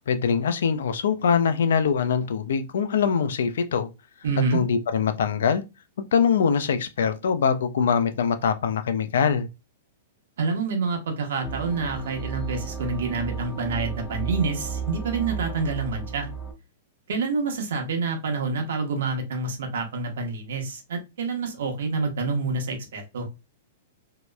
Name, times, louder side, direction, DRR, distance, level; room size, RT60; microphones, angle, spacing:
voice 1, 0.1-3.9 4.5-5.6 6.0-9.5, left 6 dB, 80° left, 0.3 m, -23 dB
voice 2, 4.2-4.6 10.4-16.3 17.1-23.3, right 4 dB, 75° right, 0.8 m, -27 dB
sound 1, 11.4-16.5, right 6 dB, 10° left, 0.5 m, -33 dB
2.8 x 2.0 x 2.2 m
supercardioid pair, 165°, 0 cm